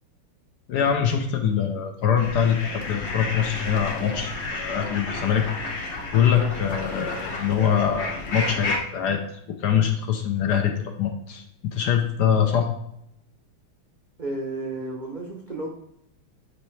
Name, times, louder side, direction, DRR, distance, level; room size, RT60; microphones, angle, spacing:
voice 1, 0.7-4.3 4.6-5.5 6.1-9.2 9.6-11.4 11.7-12.7, left 8 dB, 70° left, 4 dB, 1.1 m, -23 dB
sound 1, 2.2-8.8, left 2 dB, 45° left, 0.9 m, -31 dB
voice 2, 4.1-4.5 14.2-15.7, right 2 dB, 85° right, -1 dB, 0.4 m, -33 dB
9.8 x 3.3 x 3.2 m, 0.78 s
omnidirectional pair, 2.2 m